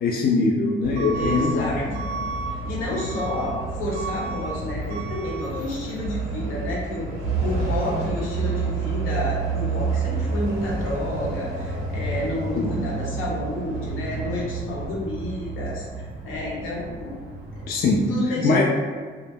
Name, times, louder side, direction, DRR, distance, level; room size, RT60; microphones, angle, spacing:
voice 1, 0.0-2.0 12.6-12.7 17.7-18.6, left 3 dB, 50° left, -1 dB, 0.4 m, -22 dB
Truck / Alarm, 0.8-18.1, right 4 dB, 75° right, 0.7 m, -29 dB
voice 2, 1.1-1.8 2.6-7.1 7.4-17.2 17.6-17.7 18.1-18.6, left 1 dB, 85° left, -4 dB, 0.8 m, -30 dB
2.1 x 2.1 x 3.4 m, 1.6 s
cardioid pair, 90°, 20 cm